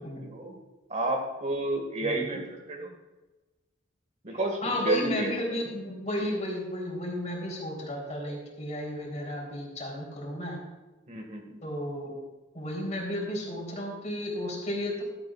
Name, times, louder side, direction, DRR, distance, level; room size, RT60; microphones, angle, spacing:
voice 1, 0.2-0.6 0.9-2.9 4.2-4.6 4.8-5.4 11.1-11.6, right 2 dB, 40° right, 3 dB, 1.8 m, -30 dB
voice 2, 2.0-2.4 4.3-10.6 11.6-12.2 12.5-15.0, left 1 dB, 40° left, -1 dB, 3.6 m, -33 dB
16.0 x 12.5 x 2.4 m, 1.1 s
head